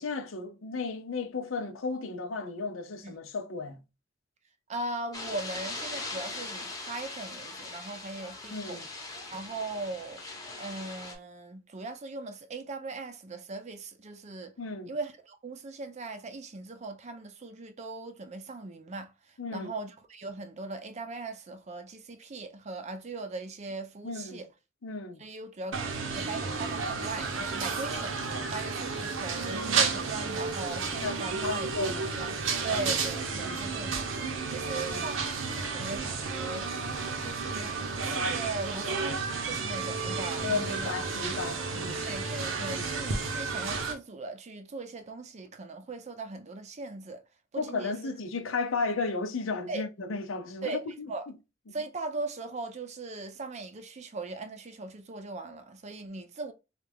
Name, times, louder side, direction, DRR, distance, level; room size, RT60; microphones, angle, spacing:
voice 1, 0.0-3.8 8.5-8.9 14.6-14.9 19.4-19.7 24.0-24.4 24.8-25.2 31.0-32.2 32.6-32.8 33.3-33.7 34.6-35.2 40.4-42.1 42.6-43.0 47.6-51.1, left 4 dB, 90° left, 0.6 m, -34 dB
voice 2, 4.7-8.8 9.3-10.2 10.6-14.5 14.9-24.5 25.2-31.7 32.2-32.4 32.6-41.0 41.9-47.2 47.5-48.1 49.7-49.9 50.6-50.8 51.1-51.2 51.7-56.5, right 3 dB, 35° right, 0.4 m, -39 dB
sound 1, 5.1-11.1, left 3 dB, 20° left, 0.8 m, -40 dB
sound 2, 25.7-43.9, right 4 dB, 75° right, 0.7 m, -32 dB
3.3 x 2.4 x 3.3 m
head